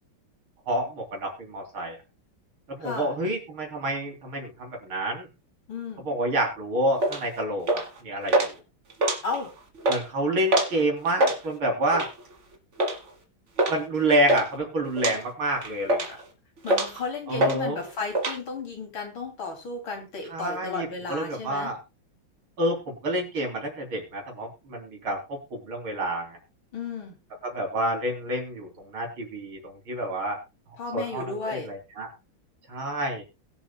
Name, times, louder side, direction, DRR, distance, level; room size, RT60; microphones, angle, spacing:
voice 1, 0.7-2.0 2.7-5.3 6.0-8.6 9.9-12.1 13.7-16.2 17.3-17.8 20.3-21.8 22.6-26.4 27.4-30.4 30.9-32.1 32.7-33.2, right 1 dB, 85° right, 2 dB, 4.3 m, -28 dB
voice 2, 2.8-3.1 5.7-6.1 9.2-9.5 16.1-16.2 16.6-21.7 26.7-27.2 30.8-31.7, left 4 dB, 75° left, 3 dB, 3.8 m, -34 dB
sound 1, 7.0-7.2 7.7-8.0 8.3-8.5 8.9-9.5 9.8-10.0 10.5-10.8 11.1-11.4 11.9-12.2 12.8-13.0 13.6-13.8 14.0-14.5 15.0-15.2 15.6-16.2 16.7-17.0 17.4-17.6 17.8-18.4, right 1 dB, 35° right, 1.8 m, -24 dB
21.5 x 7.2 x 2.3 m, 0.26 s
omnidirectional pair, 2.2 m